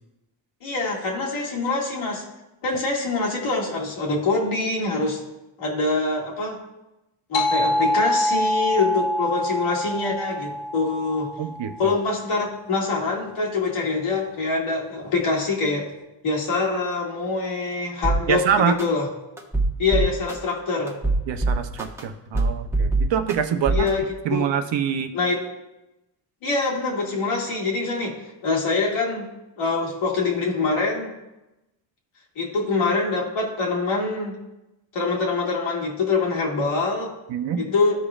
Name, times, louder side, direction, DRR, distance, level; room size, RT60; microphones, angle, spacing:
voice 1, 0.6-2.2 2.6-5.2 5.6-6.6 7.3-11.3 11.8-15.9 16.2-19.1 19.8-21.0 23.7-24.1 24.3-24.5 25.1-25.4 26.4-29.3 29.6-31.2 32.4-34.4 34.9-37.1 37.6-38.0, left 3 dB, 80° left, -2 dB, 2.2 m, -24 dB
sound 1, 7.3-12.3, left 1 dB, 60° left, 1.3 m, -25 dB
voice 2, 11.4-12.0 18.3-18.8 21.3-23.9 24.2-25.1 37.3-37.6, right 8 dB, 65° right, 8 dB, 0.8 m, -25 dB
sound 2, 18.0-18.2 18.8-18.9 19.4-20.3 20.9-22.0 22.3-23.3 23.7-23.9, right 2 dB, 5° right, 1.2 m, -22 dB
14.5 x 5.1 x 2.4 m, 0.97 s
cardioid pair, 110°, 49 cm